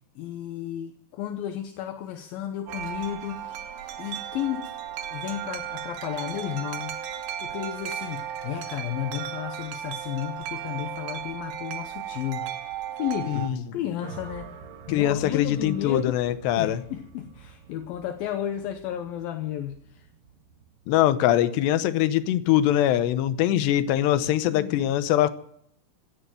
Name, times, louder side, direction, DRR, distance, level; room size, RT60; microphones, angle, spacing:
voice 1, 0.2-3.6 4.0-4.7 5.1-7.0 7.4-12.5 12.9-14.6 14.9-16.2 16.6-20.1 24.5-24.9, left 11 dB, 75° left, 2.5 m, -33 dB
Wind chime, 2.7-13.5, right 10 dB, 85° right, 3.5 m, -35 dB
voice 2, 13.3-13.6 14.9-16.8 20.9-25.3, left 12 dB, 90° left, 3.1 m, -22 dB
sound 1, 14.0-22.3, right 7 dB, 65° right, 2.8 m, -47 dB
16.5 x 8.9 x 9.1 m
omnidirectional pair, 4.8 m